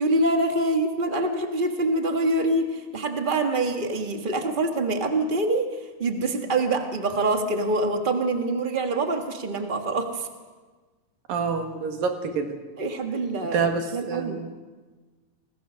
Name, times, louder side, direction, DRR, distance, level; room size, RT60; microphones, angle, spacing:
voice 1, 0.0-5.7 6.0-10.3 12.8-14.4, right 2 dB, 60° right, 4 dB, 0.5 m, -25 dB
voice 2, 11.3-12.5 13.5-14.5, right 5 dB, 80° right, 4 dB, 3.8 m, -27 dB
27.5 x 21.0 x 6.3 m, 1.4 s
omnidirectional pair, 4.0 m